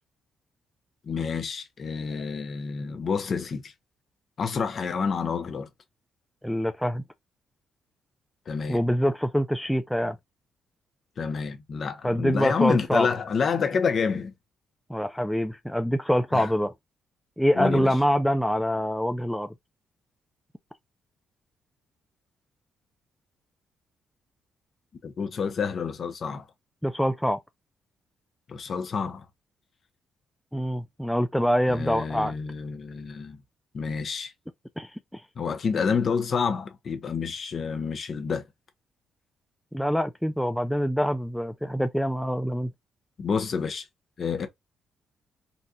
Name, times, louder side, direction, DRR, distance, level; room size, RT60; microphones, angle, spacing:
voice 1, 1.1-3.7 4.4-5.7 8.5-8.8 11.2-14.3 16.3-16.5 17.5-18.0 25.0-26.4 28.5-29.2 31.7-33.4 33.7-34.3 35.4-38.4 43.2-43.8 44.2-44.5, left 5 dB, 50° left, 0.8 m, -28 dB
voice 2, 6.4-7.0 8.7-10.2 12.0-13.1 14.9-16.7 17.4-19.5 26.8-27.4 30.5-32.3 34.8-35.2 39.7-42.7, equal, ahead, 0.3 m, -25 dB
4.0 x 2.3 x 2.5 m
cardioid pair, 90°, 0 cm